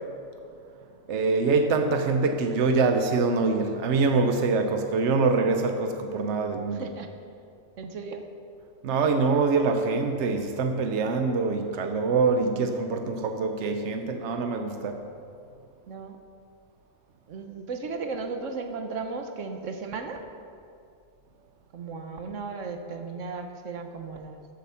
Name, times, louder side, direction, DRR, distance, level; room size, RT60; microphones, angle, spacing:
voice 1, 1.1-6.9 8.8-15.0, right 4 dB, 70° right, 6 dB, 1.1 m, -24 dB
voice 2, 6.7-7.1 7.8-8.2 15.9-16.2 17.3-20.2 21.7-24.5, right 4 dB, 90° right, 5 dB, 1.3 m, -35 dB
14.0 x 7.9 x 5.7 m, 2.4 s
omnidirectional pair, 1.2 m